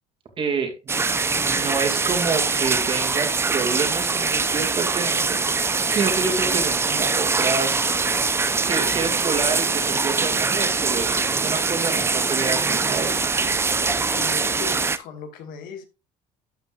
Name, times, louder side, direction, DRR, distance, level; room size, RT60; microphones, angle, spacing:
voice 1, 0.4-1.1 1.4-7.8 8.6-13.3, right 5 dB, 35° right, 2.5 m, -28 dB
sound 1, 0.9-15.0, right 4 dB, 15° right, 0.7 m, -23 dB
voice 2, 13.8-15.8, left 6 dB, 65° left, 1.9 m, -37 dB
12.5 x 5.9 x 2.5 m
cardioid pair, 120°, 15 cm